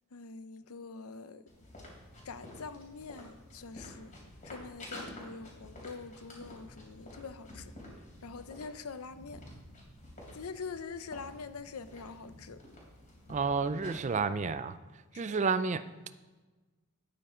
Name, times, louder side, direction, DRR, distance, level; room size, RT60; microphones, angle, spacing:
voice 1, 0.1-1.4 2.2-4.1 4.4-7.7 8.2-9.4 10.3-12.6 15.1-15.4, left 4 dB, 85° left, 12 dB, 0.7 m, -44 dB
sound 1, 1.5-14.2, left 1 dB, 40° left, 3.4 m, -50 dB
voice 2, 13.3-14.8 15.2-15.8, right 5 dB, 35° right, 13 dB, 0.4 m, -30 dB
10.5 x 8.9 x 4.4 m, 1.2 s
head